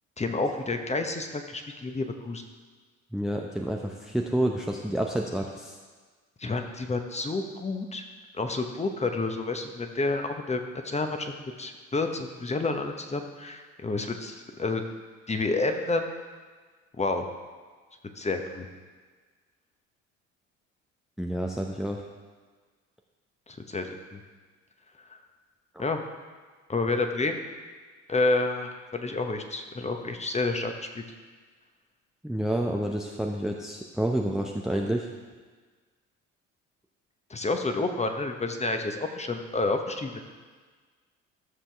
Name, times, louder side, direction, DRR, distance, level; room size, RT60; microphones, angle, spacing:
voice 1, 0.2-2.5 6.4-8.0 8.3-14.8 15.3-16.1 17.0-17.2 18.2-18.7 23.5-24.2 25.8-26.0 26.7-27.4 28.1-31.0 37.3-40.2, left 3 dB, 15° left, 5 dB, 1.0 m, -29 dB
voice 2, 3.1-5.8 21.2-22.1 25.7-25.8 32.2-35.1, right 1 dB, ahead, 1 dB, 0.7 m, -29 dB
13.0 x 7.2 x 3.5 m, 1.5 s
figure-of-eight pair, 55°, 40 cm